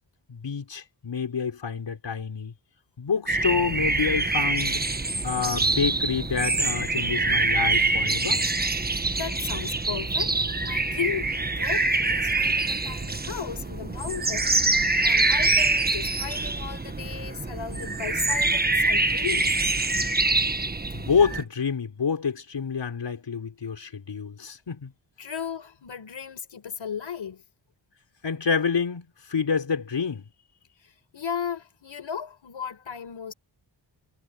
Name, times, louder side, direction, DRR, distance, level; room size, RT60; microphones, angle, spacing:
voice 1, 0.3-2.5 3.0-4.8 5.2-8.4 20.9-24.9 28.2-30.2, left 6 dB, 65° left, 4.5 m, -28 dB
sound 1, 3.3-21.4, right 3 dB, 20° right, 1.4 m, -25 dB
voice 2, 9.1-19.5 25.2-27.4 31.1-33.3, left 8 dB, 80° left, 4.6 m, -35 dB
cardioid pair, 70°, 45 cm